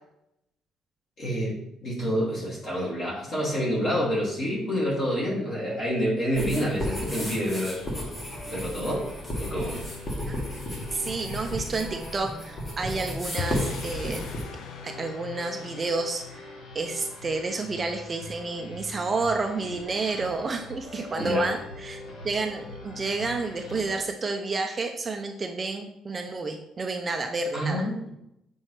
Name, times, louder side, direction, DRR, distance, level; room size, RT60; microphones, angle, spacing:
voice 1, 1.2-1.6 1.8-7.8 8.5-9.1 9.4-9.9 21.1-21.5 27.5-28.1, equal, 40° left, -5 dB, 2.5 m, -28 dB
sound 1, 6.3-14.4, equal, 25° left, 1.6 m, -34 dB
sound 2, 6.5-24.0, left 2 dB, 80° left, 1.9 m, -43 dB
voice 2, 10.9-14.3 14.8-27.9, right 3 dB, 20° right, 4 dB, 0.5 m, -30 dB
sound 3, 13.4-19.7, left 5 dB, 60° left, 0.6 m, -42 dB
7.4 x 5.3 x 3.2 m, 0.82 s
cardioid pair, 175°, 0 cm